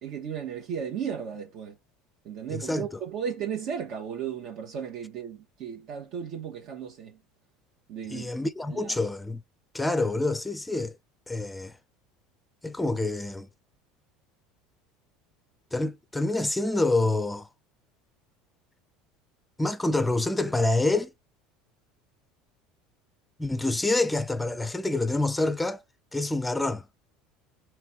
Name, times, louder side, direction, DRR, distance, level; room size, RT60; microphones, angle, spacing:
voice 1, 0.0-1.8 2.2-7.2 7.9-8.3 8.7-9.0, right 8 dB, 55° right, 1.3 m, -35 dB
voice 2, 2.5-2.9 8.1-9.4 9.7-10.9 11.3-11.7 12.6-13.5 15.7-17.5 19.6-21.1 23.4-25.8 26.1-26.9, left 2 dB, 10° left, 0.5 m, -27 dB
3.3 x 3.1 x 4.7 m
hypercardioid pair, 80°, 0 cm